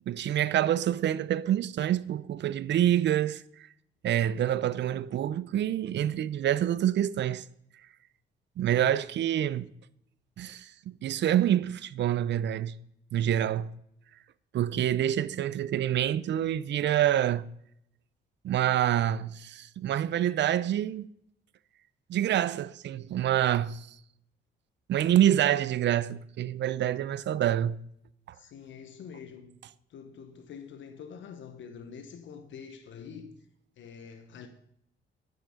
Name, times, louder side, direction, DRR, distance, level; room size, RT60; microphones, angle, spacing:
voice 1, 0.1-3.4 4.0-7.4 8.6-9.7 10.4-12.8 13.1-13.7 14.5-17.5 18.4-21.1 22.1-23.9 24.9-27.8, right 11 dB, 65° right, 0.6 m, -27 dB
voice 2, 28.3-29.6 29.9-33.3 33.8-34.5, left 6 dB, 70° left, 1.2 m, -45 dB
11.0 x 9.2 x 5.2 m
cardioid pair, 90°, 20 cm